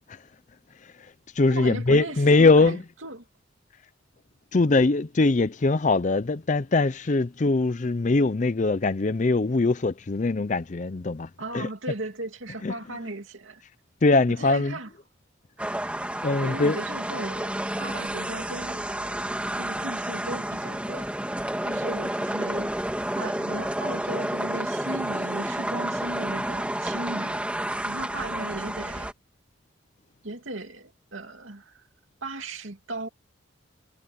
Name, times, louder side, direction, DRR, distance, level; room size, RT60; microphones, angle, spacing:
voice 1, 0.8-2.8 4.5-11.7 12.6-12.7 14.0-14.8 16.2-16.8, left 3 dB, 40° left, 0.5 m, -22 dB
voice 2, 1.5-3.2 11.4-13.6 14.4-14.9 15.6-15.8 16.4-17.5 17.8-18.8 19.6-21.1 21.6-22.7 23.1-27.4 27.8-29.1 30.2-31.8 32.2-33.1, right 2 dB, 85° right, 2.6 m, -36 dB
sound 1, 15.6-29.1, right 1 dB, 5° right, 2.2 m, -30 dB
head